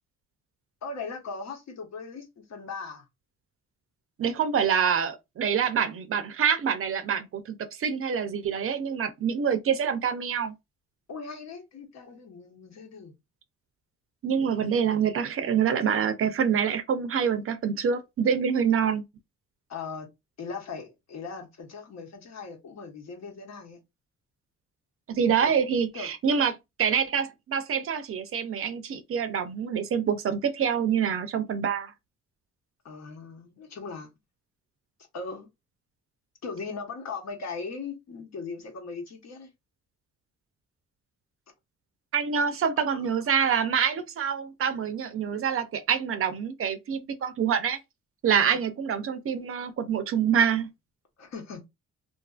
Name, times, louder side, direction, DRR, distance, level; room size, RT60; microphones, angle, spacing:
voice 1, 0.8-3.1 11.1-13.1 19.7-20.1 20.4-23.8 25.4-25.5 25.9-26.1 32.8-34.1 35.1-35.5 36.4-39.5 42.8-42.9 48.3-48.6 51.2-51.6, left 4 dB, 60° left, 1.0 m, -39 dB
voice 2, 4.2-10.5 14.2-19.0 25.1-31.9 42.1-47.8 48.2-50.7, right 7 dB, 45° right, 0.5 m, -26 dB
2.6 x 2.4 x 2.3 m
cardioid pair, 90°, 30 cm